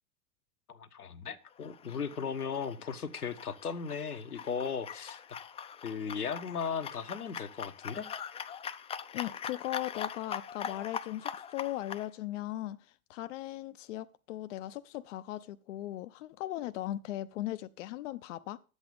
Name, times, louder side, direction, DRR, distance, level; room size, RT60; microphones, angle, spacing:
voice 1, 0.7-5.2 5.8-8.0, left 6 dB, 85° left, 1.1 m, -37 dB
sound 1, 1.6-12.1, left 8 dB, 15° left, 0.5 m, -42 dB
voice 2, 9.1-18.6, left 14 dB, 55° left, 0.7 m, -38 dB
12.0 x 8.1 x 5.2 m
figure-of-eight pair, 90°, 44 cm